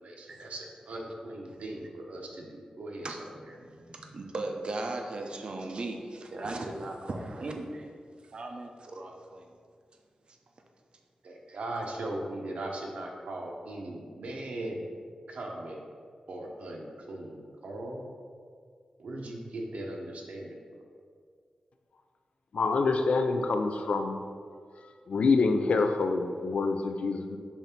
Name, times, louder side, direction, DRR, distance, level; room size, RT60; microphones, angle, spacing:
voice 1, 0.0-3.6 11.2-14.9 15.3-15.9 16.3-18.1 19.0-20.8, right 1 dB, 70° right, 0 dB, 0.9 m, -39 dB
voice 2, 3.5-7.9 8.2-9.5 10.3-10.4 11.5-11.6, right 2 dB, 45° right, 3 dB, 0.6 m, -38 dB
voice 3, 22.5-24.2 25.1-27.4, left 4 dB, 65° left, 6 dB, 0.5 m, -26 dB
7.1 x 2.7 x 5.8 m, 2.1 s
wide cardioid pair, 175°, 2 cm